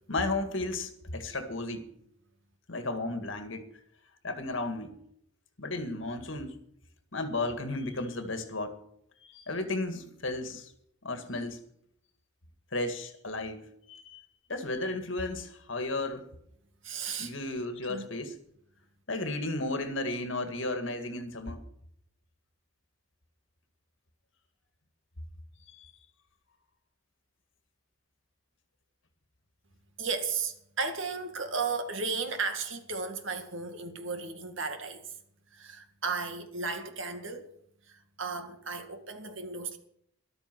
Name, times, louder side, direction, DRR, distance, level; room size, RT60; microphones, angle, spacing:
voice 1, 0.1-1.9 2.7-3.6 4.2-5.0 5.6-6.6 7.1-8.8 9.2-10.7 11.0-11.6 12.7-14.2 14.5-16.3 17.2-18.3 19.1-21.6 25.7-25.9, left 2 dB, 65° left, 2.0 m, -34 dB
voice 2, 16.8-17.3 17.8-18.0 30.0-35.1 35.5-37.5 37.9-39.8, right 4 dB, 70° right, 2.0 m, -35 dB
13.5 x 12.5 x 6.1 m
head